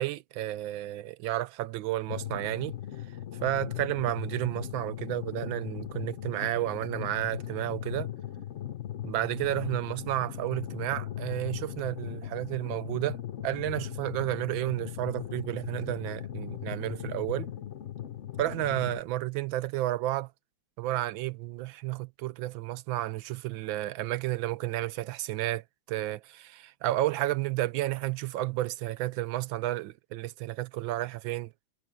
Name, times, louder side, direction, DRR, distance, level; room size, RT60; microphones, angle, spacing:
voice 1, 0.0-2.8 3.4-8.1 9.0-13.2 13.4-17.5 18.4-20.3 20.8-31.5, right 15 dB, 75° right, 1.3 m, -31 dB
sound 1, 2.1-19.0, left 11 dB, 55° left, 0.8 m, -38 dB
omnidirectional pair, 2.3 m